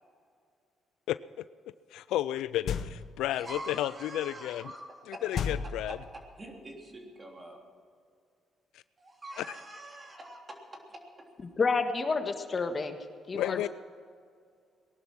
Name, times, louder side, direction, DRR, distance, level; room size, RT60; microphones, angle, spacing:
voice 1, 1.9-4.7 5.1-6.0 8.7-8.8 9.4-9.6 13.3-13.7, left 13 dB, 90° left, 15 dB, 0.3 m, -32 dB
sound 1, 2.7-3.3 5.3-6.4, left 7 dB, 65° left, 0.8 m, -34 dB
voice 2, 3.3-5.4 6.4-7.6 9.0-10.6 10.9-11.3, right 1 dB, 30° right, 1 dB, 3.3 m, -45 dB
voice 3, 11.6-13.0 13.3-13.6, left 4 dB, 40° left, 7 dB, 1.5 m, -29 dB
19.0 x 11.5 x 6.0 m, 2.2 s
cardioid pair, 90°, 0 cm